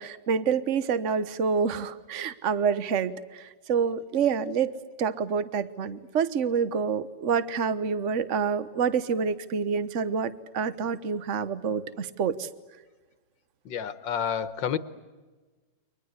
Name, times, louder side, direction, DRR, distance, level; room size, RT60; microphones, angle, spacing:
voice 1, 0.0-4.7 5.0-12.5, right 6 dB, 45° right, 14 dB, 1.4 m, -27 dB
voice 2, 13.7-14.8, left 8 dB, 90° left, 13 dB, 1.9 m, -29 dB
30.0 x 24.5 x 8.1 m, 1.3 s
omnidirectional pair, 2.0 m